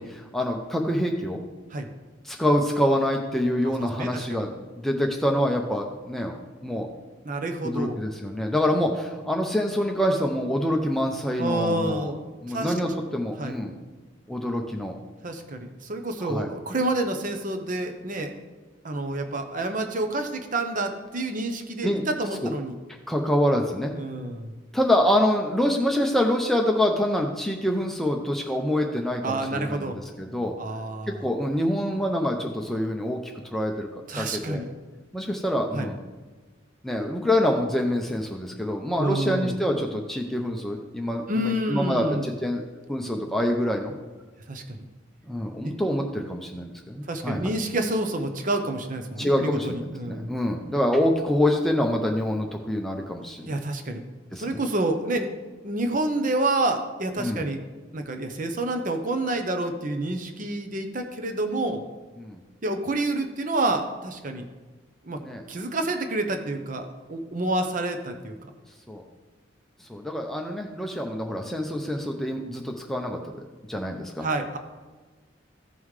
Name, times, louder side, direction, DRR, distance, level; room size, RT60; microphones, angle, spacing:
voice 1, 0.0-1.4 2.2-6.9 7.6-12.1 12.4-13.7 14.3-14.9 16.2-16.5 21.8-22.0 22.4-22.5 23.1-23.9 24.7-30.5 31.1-33.9 34.2-34.6 35.1-36.0 36.8-42.6 42.9-43.9 45.3-47.5 49.2-53.6 54.3-54.6 57.2-57.4 62.2-62.4 65.2-65.4 68.9-69.0 69.9-73.2 73.7-74.3, left 1 dB, ahead, 1 dB, 0.6 m, -26 dB
voice 2, 4.0-4.5 7.2-8.0 11.4-12.2 12.5-12.7 13.4-13.6 15.2-18.3 18.8-22.8 23.9-24.5 29.2-30.0 30.6-31.3 34.1-34.7 35.7-35.9 39.0-39.5 41.3-42.3 44.5-44.8 45.6-45.7 47.1-50.3 53.5-54.0 54.4-55.3 55.6-57.6 57.9-61.8 62.6-64.4 65.0-65.2 65.5-68.4 74.2-74.6, right 2 dB, 40° right, 6 dB, 0.8 m, -28 dB
15.0 x 5.5 x 3.2 m, 1.3 s
head